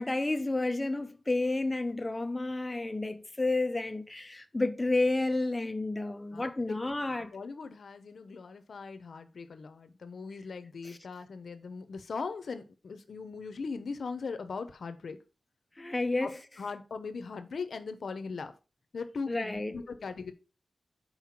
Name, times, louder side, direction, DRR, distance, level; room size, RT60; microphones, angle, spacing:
voice 1, 0.0-7.3 10.8-11.0 15.8-16.3 19.3-19.8, left 2 dB, 20° left, 0.8 m, -31 dB
voice 2, 6.3-6.9 7.3-15.2 16.2-16.3 16.6-18.5 18.9-20.3, left 4 dB, 80° left, 0.8 m, -39 dB
5.6 x 4.7 x 5.8 m
wide cardioid pair, 90°, 0 cm